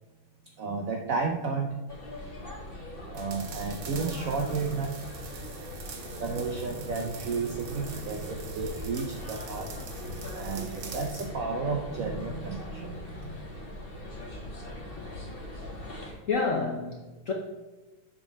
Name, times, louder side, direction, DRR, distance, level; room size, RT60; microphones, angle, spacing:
voice 1, 0.6-1.8 3.1-4.9 6.2-9.7 10.3-13.6, right 4 dB, 75° right, 3 dB, 0.7 m, -32 dB
sound 1, 1.9-16.1, left 1 dB, 30° left, 1.4 m, -40 dB
sound 2, 3.1-11.3, right 6 dB, 60° right, 1.2 m, -46 dB
voice 2, 16.0-17.3, left 4 dB, 65° left, 0 dB, 0.8 m, -30 dB
7.7 x 3.9 x 6.0 m, 1.1 s
omnidirectional pair, 2.3 m